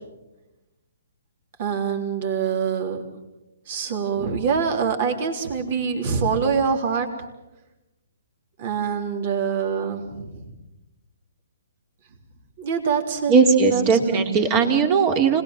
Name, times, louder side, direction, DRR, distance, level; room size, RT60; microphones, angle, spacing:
voice 1, 1.6-3.0 3.7-7.1 8.6-10.3 12.6-13.3 13.6-14.3, right 6 dB, 45° right, 4 dB, 3.7 m, -25 dB
voice 2, 13.3-15.4, right 5 dB, 30° right, 5 dB, 3.1 m, -18 dB
26.0 x 20.5 x 7.5 m, 1.0 s
hypercardioid pair, 135°, 0 cm